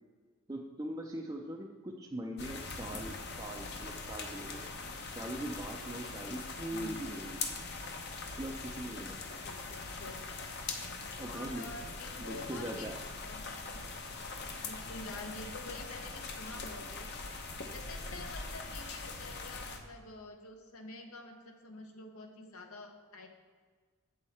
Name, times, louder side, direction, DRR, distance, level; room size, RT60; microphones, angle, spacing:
voice 1, 0.5-4.6 5.1-7.4 8.3-9.2 11.2-11.7 12.2-13.0, right 1 dB, 15° right, -2 dB, 0.5 m, -41 dB
sound 1, 2.4-19.8, left 3 dB, 50° left, 0.8 m, -42 dB
voice 2, 6.7-7.0 9.4-10.2 11.2-12.9 13.2-13.8 14.6-17.1 17.7-23.3, left 2 dB, 80° left, 4 dB, 1.0 m, -48 dB
8.0 x 6.4 x 4.3 m, 1.5 s
head